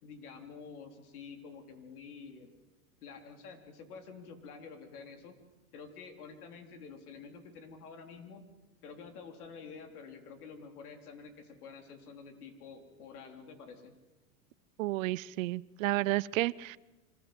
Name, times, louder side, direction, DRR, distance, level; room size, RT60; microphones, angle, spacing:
voice 1, 0.0-2.5 3.0-5.4 5.7-8.4 8.8-14.0, left 5 dB, 85° left, 5 dB, 4.0 m, -49 dB
voice 2, 14.8-16.8, right 18 dB, 65° right, 20 dB, 0.7 m, -31 dB
25.5 x 20.5 x 7.8 m, 1.1 s
supercardioid pair, 150°, 44 cm